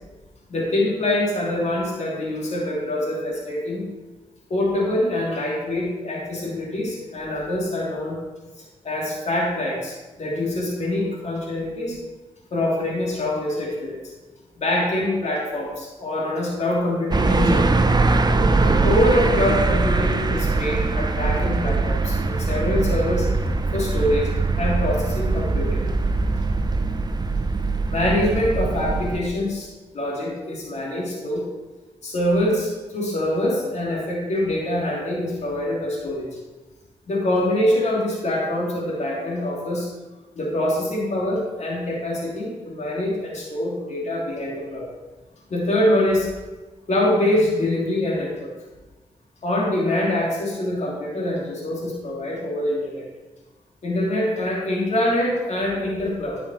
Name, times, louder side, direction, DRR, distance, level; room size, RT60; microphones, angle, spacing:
voice 1, 0.5-3.8 4.5-8.2 8.8-12.0 12.5-14.0 14.6-17.6 18.6-23.3 23.7-24.3 24.6-25.8 27.9-29.7 29.9-31.4 32.0-36.3 37.1-39.9 40.4-44.9 45.5-46.3 46.9-48.5 49.4-53.1 53.8-56.4, left 1 dB, 60° left, -3 dB, 2.9 m, -24 dB
sound 1, 17.1-29.2, right 3 dB, 35° right, 0.8 m, -22 dB
10.5 x 6.2 x 4.4 m, 1.2 s
cardioid pair, 60°, 13 cm